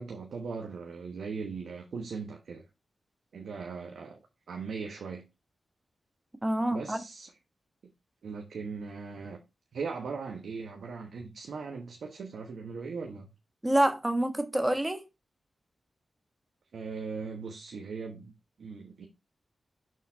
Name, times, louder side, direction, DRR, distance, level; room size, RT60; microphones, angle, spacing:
voice 1, 0.0-2.6 3.3-4.2 4.5-5.2 6.7-7.3 8.2-9.4 9.7-13.3 16.7-18.3 18.6-19.1, right 5 dB, 85° right, 1.1 m, -39 dB
voice 2, 6.4-7.0 13.6-15.0, right 1 dB, 15° right, 1.3 m, -27 dB
6.6 x 4.1 x 4.1 m
cardioid pair, 60°, 0 cm